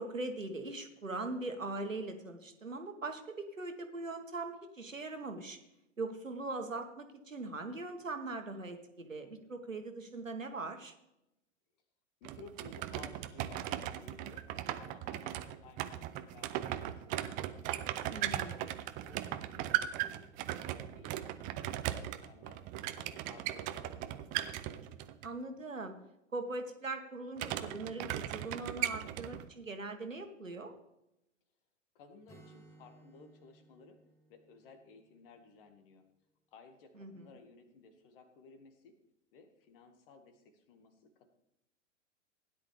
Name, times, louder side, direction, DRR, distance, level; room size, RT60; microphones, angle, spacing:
voice 1, 0.0-5.6 6.0-10.9 18.1-18.6 25.2-25.9 26.3-30.7 37.0-37.2, right 2 dB, 85° right, 6 dB, 1.6 m, -41 dB
voice 2, 12.2-14.5 14.8-17.2 17.7-18.5 19.0-21.7 22.0-24.2 32.0-34.0 34.3-36.0 36.5-39.0 39.3-41.3, left 4 dB, 45° left, 8 dB, 1.8 m, -57 dB
sound 1, 12.2-25.3 27.4-29.5, right 13 dB, 20° right, 0.5 m, -38 dB
Acoustic guitar, 32.3-36.0, right 2 dB, 5° left, 1.4 m, -61 dB
16.0 x 10.5 x 3.4 m, 0.86 s
figure-of-eight pair, 105°, 38 cm